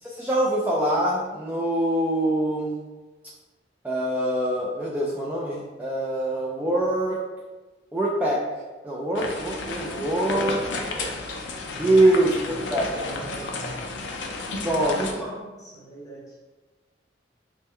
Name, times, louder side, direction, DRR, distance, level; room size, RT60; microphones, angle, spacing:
voice 1, 0.0-2.8 3.8-7.2 7.9-8.5 8.8-10.6 11.8-13.3 14.6-15.3, right 1 dB, 10° right, -6 dB, 0.3 m, -24 dB
sound 1, 9.2-15.1, left 3 dB, 80° left, 0.5 m, -33 dB
voice 2, 10.2-11.2 11.7-14.0 14.7-16.4, right 2 dB, 20° left, -4 dB, 0.8 m, -38 dB
3.5 x 2.1 x 4.3 m, 1.2 s
head